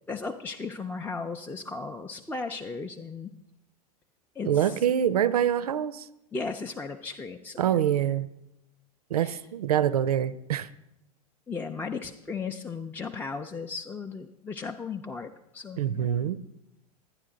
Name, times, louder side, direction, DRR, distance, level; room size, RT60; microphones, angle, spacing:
voice 1, 0.1-3.3 4.4-4.9 6.3-7.8 9.2-9.4 11.5-16.3, left 4 dB, 10° left, 3 dB, 0.5 m, -36 dB
voice 2, 4.4-6.1 7.6-8.3 9.1-10.7 15.8-16.4, right 10 dB, 75° right, 17 dB, 0.5 m, -25 dB
11.5 x 9.9 x 3.8 m, 0.88 s
figure-of-eight pair, 90°, 20 cm